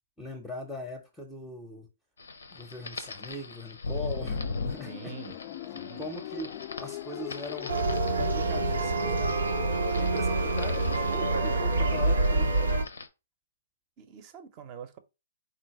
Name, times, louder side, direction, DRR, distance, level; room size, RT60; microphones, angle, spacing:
voice 1, 0.2-1.9 2.5-5.1 5.8-7.7 8.1-9.4 9.9-12.7, left 1 dB, 5° left, 0.7 m, -41 dB
sound 1, 2.2-13.1, left 3 dB, 80° left, 0.6 m, -40 dB
sound 2, 4.1-12.8, left 14 dB, 40° left, 0.3 m, -39 dB
voice 2, 4.8-5.4 5.7-6.1 14.0-15.0, right 7 dB, 35° right, 0.7 m, -45 dB
sound 3, 7.7-12.8, right 3 dB, 85° right, 0.6 m, -26 dB
3.8 x 2.5 x 4.6 m
hypercardioid pair, 135°, 0 cm